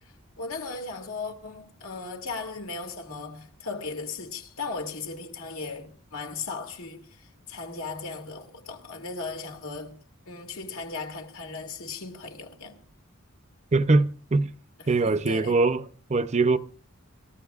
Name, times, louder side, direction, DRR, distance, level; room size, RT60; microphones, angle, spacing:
voice 1, 0.0-12.8 14.8-15.6, left 4 dB, 80° left, 2.2 m, -37 dB
voice 2, 13.7-14.5 14.9-15.8 16.1-16.6, right 3 dB, 35° right, 0.6 m, -22 dB
27.5 x 14.0 x 2.4 m
head